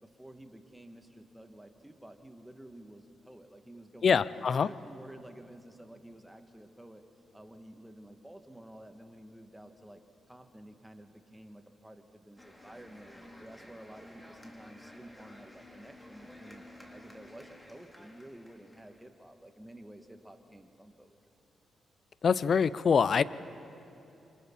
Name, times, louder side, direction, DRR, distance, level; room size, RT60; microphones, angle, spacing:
voice 1, 0.0-4.2 4.6-7.0 7.3-10.0 10.3-13.1 13.4-21.2, right 1 dB, 10° right, 6 dB, 2.2 m, -51 dB
voice 2, 4.0-4.7 22.2-23.2, left 6 dB, 60° left, 18 dB, 0.5 m, -24 dB
sound 1, 12.4-19.1, left 1 dB, 10° left, 3.0 m, -53 dB
28.0 x 24.5 x 4.3 m, 2.8 s
hypercardioid pair, 40°, 0 cm